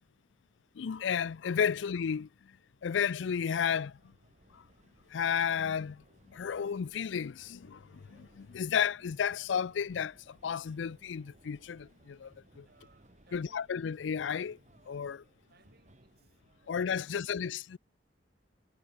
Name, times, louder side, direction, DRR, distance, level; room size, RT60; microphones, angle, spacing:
voice 1, 0.8-2.3 2.8-4.0 5.1-6.0 6.3-7.8 8.1-12.7 13.3-14.6 14.9-15.2 16.7-17.8, left 7 dB, 75° left, 0.4 m, -32 dB
sound 1, 3.2-17.2, right 1 dB, 40° right, 2.7 m, -63 dB
voice 2, 12.6-13.8 15.5-17.4, right 3 dB, 60° right, 5.2 m, -67 dB
head